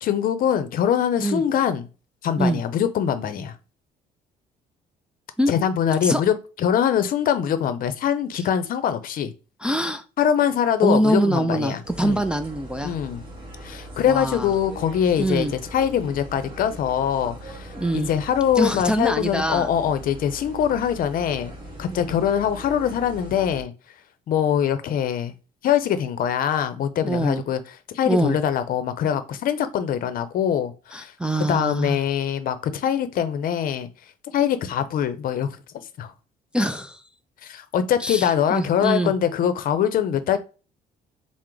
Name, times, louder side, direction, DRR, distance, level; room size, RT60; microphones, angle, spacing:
voice 1, 0.0-1.9 2.2-3.5 5.5-9.3 10.2-12.2 12.8-13.2 13.6-21.5 21.8-23.7 24.3-25.3 25.6-27.6 27.9-31.1 31.5-33.9 34.3-35.5 36.0-36.1 37.4-40.4, left 9 dB, 55° left, 0.6 m, -23 dB
voice 2, 9.6-10.0 10.8-12.9 14.1-14.5 15.2-15.5 17.8-18.1 18.6-19.7 21.9-22.2 27.0-27.4 28.1-28.4 30.9-32.0 36.5-37.0 38.0-39.1, right 1 dB, 5° right, 0.3 m, -24 dB
sound 1, 11.8-23.6, right 1 dB, 30° right, 1.5 m, -40 dB
4.5 x 2.1 x 3.8 m
cardioid pair, 110°, 17 cm